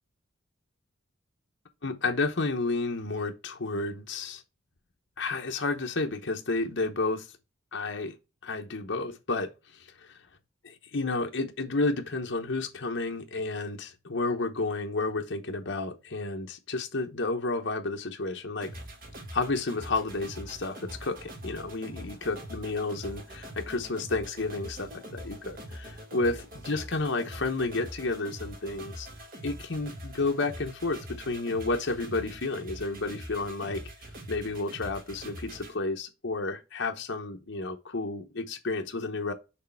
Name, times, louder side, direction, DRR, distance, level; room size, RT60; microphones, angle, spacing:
voice 1, 1.8-4.4 5.2-7.3 7.7-8.1 8.4-10.2 10.9-18.7 19.3-26.4 26.6-29.1 29.4-33.8 34.3-39.3, left 3 dB, 60° left, 1.0 m, -31 dB
sound 1, 18.6-35.7, right 1 dB, 45° right, 2.0 m, -43 dB
6.6 x 3.2 x 5.7 m
head